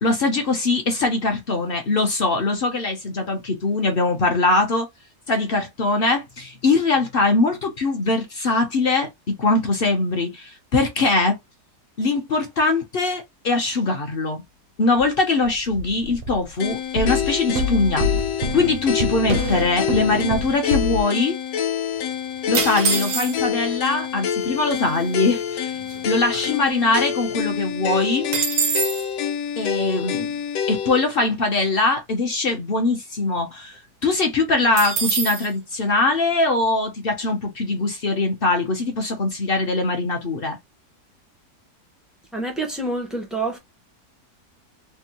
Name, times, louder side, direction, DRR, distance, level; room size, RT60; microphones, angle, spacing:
voice 1, 0.0-4.9 5.3-11.4 12.0-14.4 14.8-18.1 18.5-21.4 22.5-25.7 26.0-28.3 29.6-30.3 30.7-40.6, left 3 dB, 50° left, 0.7 m, -22 dB
sound 1, 15.0-15.1 15.4-16.5 17.0-21.0, left 1 dB, 70° right, 1.0 m, -27 dB
sound 2, 16.6-31.0, left 9 dB, 70° left, 1.0 m, -27 dB
sound 3, 22.5-23.6 24.4-24.5 24.7-25.1 25.5-27.0 27.3-27.4 27.7-29.1 34.8-35.5, right 6 dB, 85° right, 1.4 m, -25 dB
voice 2, 42.3-43.6, right 2 dB, ahead, 0.3 m, -27 dB
3.4 x 2.0 x 2.8 m
omnidirectional pair, 1.7 m